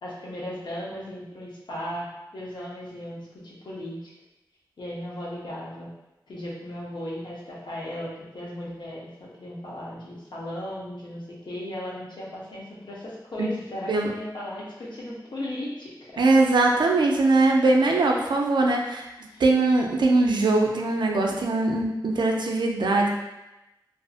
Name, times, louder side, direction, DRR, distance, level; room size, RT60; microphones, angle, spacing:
voice 1, 0.0-4.1 4.8-5.9 6.3-16.2 18.2-18.3 19.3-19.4, left 1 dB, 80° left, -6 dB, 0.7 m, -36 dB
voice 2, 16.2-19.1 19.4-23.1, right 2 dB, 80° right, 1 dB, 0.4 m, -21 dB
2.6 x 2.4 x 2.4 m, 0.96 s
wide cardioid pair, 105°, 8 cm